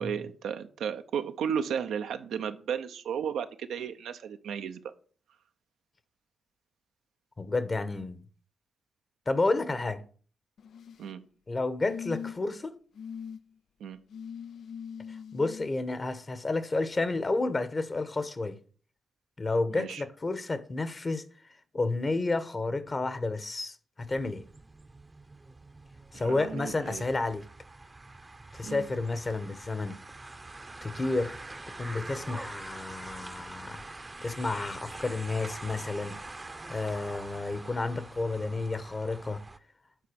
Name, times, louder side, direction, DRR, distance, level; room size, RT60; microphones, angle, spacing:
voice 1, 0.0-4.8 11.0-11.2 13.8-14.0 19.7-20.0 26.1-27.0 28.6-28.9, right 7 dB, 85° right, 0.6 m, -34 dB
voice 2, 7.4-8.2 9.3-10.0 11.5-12.8 15.3-18.6 19.4-21.2 21.7-24.4 26.1-27.4 28.5-30.0 30.8-31.4 31.8-33.8 34.2-36.2 36.7-39.4, left 3 dB, 40° left, 1.1 m, -31 dB
sound 1, 10.6-11.1 11.8-12.5 13.0-13.4 14.1-15.7 16.9-17.0, left 7 dB, 75° left, 0.4 m, -41 dB
sound 2, 24.0-39.6, right 2 dB, 30° right, 0.7 m, -45 dB
8.2 x 4.1 x 6.3 m
supercardioid pair, 50°, 0 cm